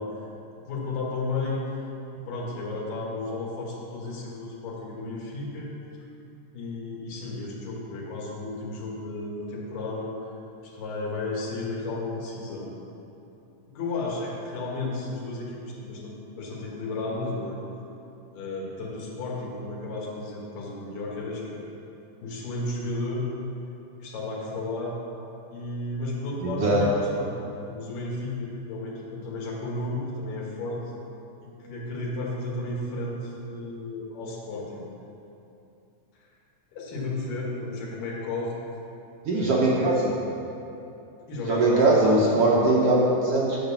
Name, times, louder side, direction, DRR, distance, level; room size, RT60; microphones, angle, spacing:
voice 1, 0.0-1.8 2.1-5.7 6.5-10.3 10.6-12.7 13.6-17.6 18.3-21.7 22.2-23.3 24.0-25.0 25.5-27.3 27.7-30.9 31.4-34.8 36.7-38.6 39.3-39.8 41.3-42.2, left 2 dB, 85° left, -4 dB, 3.1 m, -33 dB
voice 2, 26.4-26.8 39.2-40.1 41.5-43.6, right 2 dB, 65° right, -4 dB, 1.5 m, -21 dB
9.1 x 5.3 x 6.9 m, 2.8 s
omnidirectional pair, 3.8 m